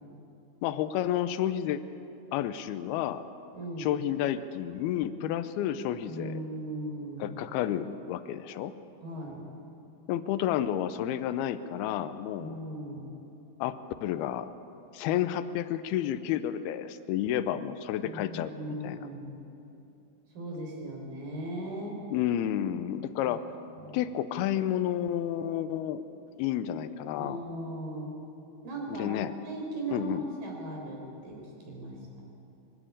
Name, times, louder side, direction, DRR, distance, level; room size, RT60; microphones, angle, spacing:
voice 1, 0.6-1.8 2.3-3.2 3.8-6.4 7.2-8.7 10.1-12.6 13.6-14.5 14.9-19.1 22.1-23.4 23.9-26.0 26.4-27.4 28.9-29.3 29.9-30.2, left 11 dB, 80° left, 11 dB, 2.4 m, -31 dB
voice 2, 3.5-3.9 6.1-7.4 9.0-9.4 12.4-13.1 18.0-19.4 20.3-22.0 23.3-23.4 23.8-24.0 27.2-28.1 28.6-29.1 29.5-31.4 31.7-31.9, right 1 dB, 55° right, 0 dB, 5.8 m, -38 dB
24.5 x 12.5 x 8.8 m, 2.9 s
omnidirectional pair, 5.0 m